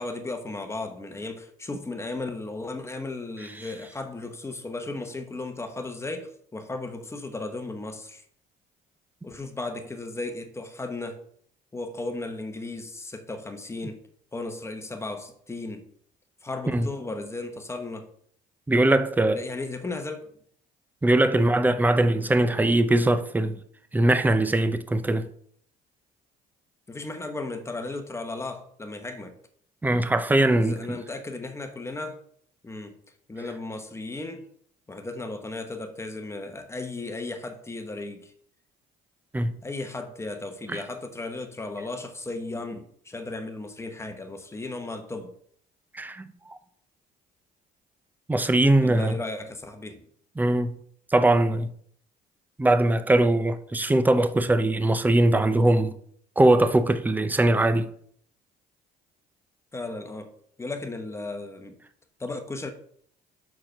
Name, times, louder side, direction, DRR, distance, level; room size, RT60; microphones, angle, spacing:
voice 1, 0.0-8.2 9.2-11.2 11.7-14.0 14.3-15.8 16.4-18.1 19.3-20.3 21.3-21.5 26.9-29.3 30.6-32.2 32.6-33.0 33.3-34.5 34.9-38.3 39.6-45.3 48.8-50.0 59.7-60.3 60.6-61.8 62.2-62.7, left 2 dB, 15° left, 1.0 m, -35 dB
voice 2, 18.7-19.4 21.0-23.6 23.9-25.3 29.8-30.8 39.3-39.5 40.7-40.8 45.9-46.6 48.3-49.2 50.4-50.7 51.1-51.7 52.6-56.0 56.4-57.9, right 1 dB, 10° right, 0.6 m, -21 dB
5.9 x 4.7 x 6.4 m
cardioid pair, 110°, 17 cm